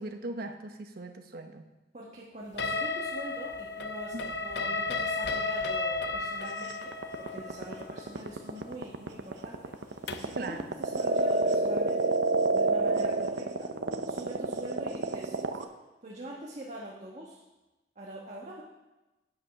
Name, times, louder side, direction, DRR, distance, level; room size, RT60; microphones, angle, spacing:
voice 1, 0.0-1.6 4.1-4.2 10.3-10.7, right 2 dB, 60° right, 6 dB, 0.9 m, -39 dB
voice 2, 1.9-6.9 7.2-12.2 12.5-13.7 14.1-15.3 16.0-17.4 17.9-18.6, right 1 dB, 40° right, -4 dB, 1.4 m, -44 dB
sound 1, 2.6-10.4, left 3 dB, 70° left, 0.7 m, -34 dB
sound 2, 6.7-15.6, right 2 dB, 85° right, 0.7 m, -28 dB
8.8 x 8.0 x 5.9 m, 1.1 s
head